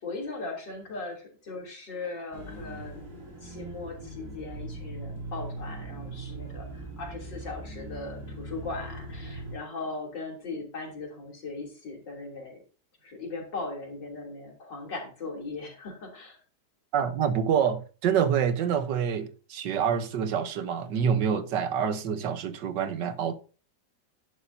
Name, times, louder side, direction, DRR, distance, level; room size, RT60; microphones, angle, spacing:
voice 1, 0.0-3.1 3.4-12.6 13.0-16.4, left 3 dB, 80° left, 3.7 m, -38 dB
sound 1, 2.3-9.6, right 2 dB, 45° right, 3.1 m, -40 dB
voice 2, 16.9-23.3, right 8 dB, 75° right, 1.6 m, -27 dB
11.0 x 10.0 x 2.7 m
omnidirectional pair, 1.9 m